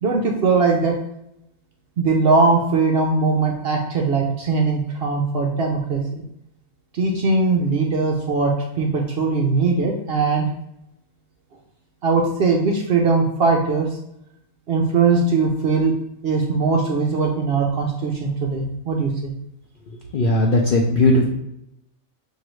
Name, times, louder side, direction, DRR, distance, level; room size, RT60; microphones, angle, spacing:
voice 1, 0.0-0.9 2.0-6.2 6.9-10.5 12.0-13.9 14.7-15.9 16.2-19.3, right 4 dB, 60° right, 1 dB, 0.6 m, -20 dB
voice 2, 20.1-21.2, left 1 dB, 65° left, 0 dB, 0.5 m, -17 dB
6.3 x 2.7 x 3.0 m, 0.81 s
omnidirectional pair, 1.5 m